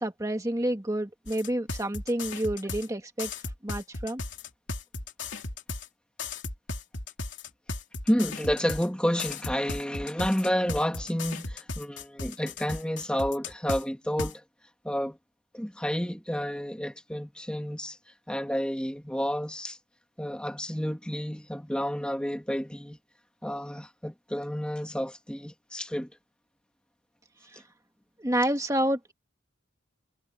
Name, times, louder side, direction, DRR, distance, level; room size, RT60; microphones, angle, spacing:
voice 1, 0.0-3.3 3.6-4.2 28.2-29.1, right 1 dB, 15° right, 1.8 m, -29 dB
sound 1, 1.3-2.9 3.2-5.9 6.2-8.9 9.2-13.8 14.2-14.3, left 3 dB, 65° left, 3.3 m, -36 dB
voice 2, 8.1-14.4 14.8-15.2 15.5-18.0 18.3-19.8 20.2-23.0 23.4-26.1 27.5-27.6, equal, 5° left, 1.8 m, -30 dB
head